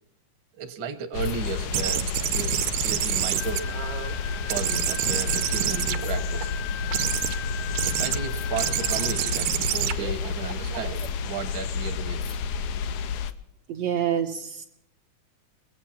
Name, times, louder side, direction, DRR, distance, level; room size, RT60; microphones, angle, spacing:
voice 1, 0.6-3.6 4.5-6.5 7.8-12.4, right 5 dB, 55° right, 4 dB, 1.4 m, -34 dB
sound 1, 1.1-13.3, left 4 dB, 80° left, 2.1 m, -30 dB
sound 2, 1.7-4.1 4.5-6.4 6.9-7.4 7.7-8.2 8.6-11.1, right 12 dB, 90° right, 2.3 m, -28 dB
sound 3, 3.4-9.4, left 10 dB, 60° left, 1.7 m, -39 dB
voice 2, 13.7-14.7, right 9 dB, 70° right, 1 dB, 1.7 m, -27 dB
23.0 x 8.0 x 5.7 m, 0.75 s
omnidirectional pair, 3.6 m